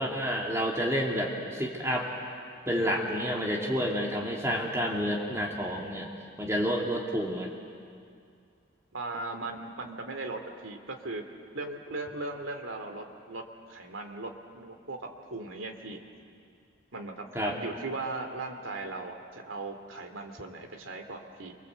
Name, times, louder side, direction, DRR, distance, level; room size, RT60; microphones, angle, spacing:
voice 1, 0.0-2.1 2.7-6.1 6.4-7.5 17.3-17.5, equal, 15° right, -1 dB, 2.5 m, -29 dB
voice 2, 8.9-11.2 11.5-13.4 13.7-16.0 16.9-21.6, right 2 dB, 85° right, 5 dB, 2.6 m, -38 dB
28.0 x 24.5 x 8.1 m, 2.3 s
head